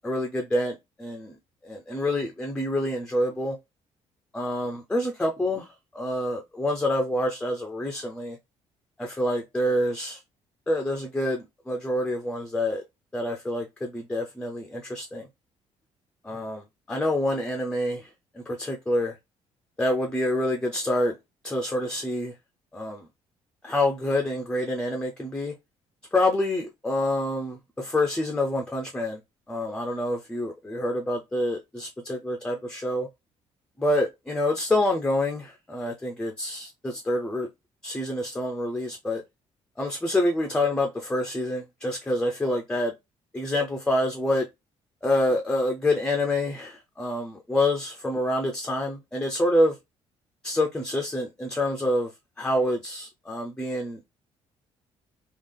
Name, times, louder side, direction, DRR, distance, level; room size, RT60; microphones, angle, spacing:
voice 1, 0.0-1.4 1.6-3.6 4.3-8.4 9.0-10.2 10.7-12.8 13.1-15.3 16.2-18.1 18.3-19.2 19.8-21.2 21.4-22.3 22.7-23.1 23.6-25.5 26.1-29.2 29.5-33.1 33.8-37.5 37.8-39.2 39.8-42.9 43.3-44.5 45.0-49.8 50.4-52.1 52.4-54.0, left 1 dB, 5° left, 0.4 m, -27 dB
3.6 x 2.3 x 3.3 m
cardioid pair, 150°, 11 cm